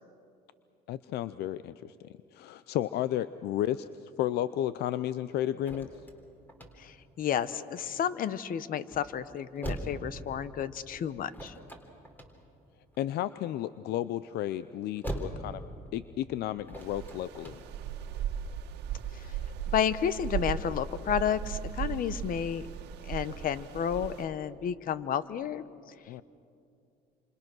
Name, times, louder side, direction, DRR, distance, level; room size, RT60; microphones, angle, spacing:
voice 1, 0.9-3.9 4.2-5.9 13.0-15.6 15.9-17.6 26.1-26.2, left 12 dB, 75° left, 15 dB, 0.6 m, -33 dB
sound 1, 5.2-17.9, right 1 dB, 10° left, 3.6 m, -43 dB
voice 2, 6.8-11.5 19.1-19.4 19.7-22.7 23.0-25.6, left 9 dB, 55° left, 15 dB, 1.0 m, -31 dB
sound 2, 16.8-24.2, right 9 dB, 85° right, 1.7 m, -37 dB
28.5 x 26.0 x 6.2 m, 2.5 s
cardioid pair, 110°, 17 cm